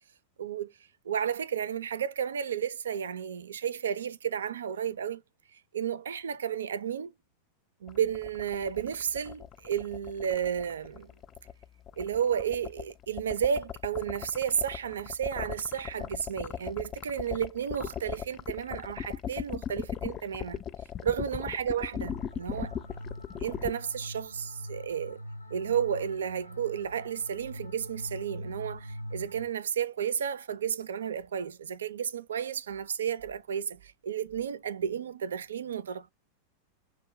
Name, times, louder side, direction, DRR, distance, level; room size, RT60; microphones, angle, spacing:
voice 1, 0.4-0.7 1.1-5.2 5.7-7.1 7.8-11.1 12.0-20.6 21.0-22.7 23.4-25.2 25.5-36.1, right 8 dB, 65° right, 0.4 m, -32 dB
sound 1, 7.9-23.7, left 9 dB, 30° left, 0.3 m, -37 dB
sound 2, 22.0-29.5, equal, 80° left, 0.5 m, -43 dB
6.8 x 2.4 x 3.0 m
figure-of-eight pair, 90°, 0 cm